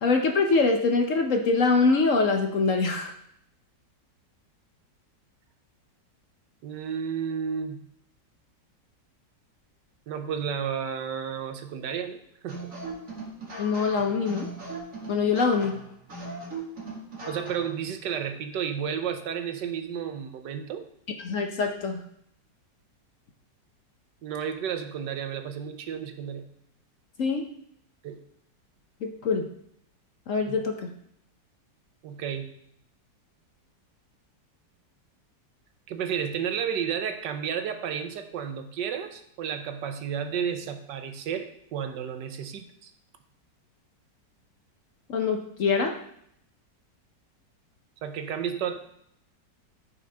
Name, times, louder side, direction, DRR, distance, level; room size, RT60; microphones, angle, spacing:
voice 1, 0.0-3.1 13.6-14.5 15.1-15.7 21.2-22.0 27.2-27.5 29.0-29.5 30.3-30.9 45.1-46.0, left 4 dB, 55° left, 4 dB, 1.0 m, -24 dB
voice 2, 6.6-7.8 10.1-12.7 17.3-20.8 24.2-26.5 28.0-28.2 30.5-30.6 32.0-32.5 35.9-42.9 48.0-48.8, right 7 dB, 75° right, 8 dB, 1.4 m, -32 dB
sound 1, 12.5-17.8, right 2 dB, 45° right, 2.5 m, -39 dB
13.5 x 5.6 x 3.5 m, 0.71 s
omnidirectional pair, 1.9 m